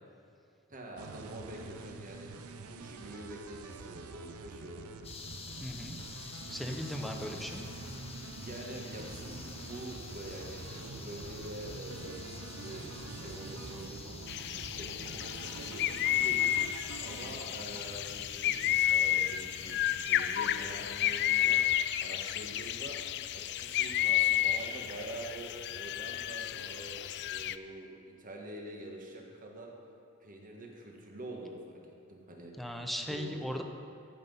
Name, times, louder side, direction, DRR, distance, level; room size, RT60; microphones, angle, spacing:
voice 1, 0.7-2.3 2.6-4.9 6.9-7.2 8.3-14.2 14.5-16.4 17.0-19.8 20.0-21.6 22.0-23.0 23.3-29.7 30.2-31.8 32.1-32.7 33.1-33.4, right 1 dB, 40° right, 0 dB, 1.5 m, -46 dB
sound 1, 1.0-18.1, right 4 dB, 80° right, 0.6 m, -47 dB
sound 2, 5.0-21.6, left 2 dB, 30° left, 1.0 m, -47 dB
voice 2, 5.6-6.0 6.5-7.6 32.6-33.6, equal, ahead, 3 dB, 0.6 m, -37 dB
sound 3, 14.3-27.6, left 12 dB, 50° left, 0.3 m, -31 dB
14.0 x 5.9 x 5.4 m, 2.6 s
head